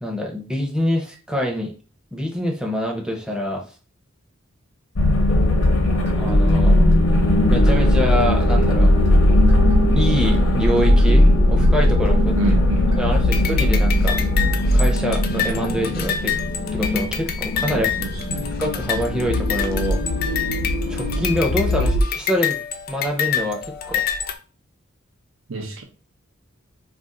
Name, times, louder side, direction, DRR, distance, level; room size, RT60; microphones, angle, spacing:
voice 1, 0.0-1.7 2.1-3.6 6.2-6.9 7.5-8.9 9.9-12.3 13.0-14.2 14.7-16.4 16.7-17.9 18.6-20.0 20.9-22.6 22.9-23.6 23.8-24.0, equal, 5° right, 0.6 m, -25 dB
sound 1, 5.0-22.0, left 1 dB, 75° left, 0.6 m, -18 dB
sound 2, 5.2-14.9, left 1 dB, 30° right, 1.2 m, -39 dB
voice 2, 12.3-13.2 17.7-18.5 25.5-25.8, right 2 dB, 70° right, 0.7 m, -28 dB
sound 3, 13.3-24.3, left 8 dB, 45° left, 0.3 m, -28 dB
2.5 x 2.4 x 3.7 m
head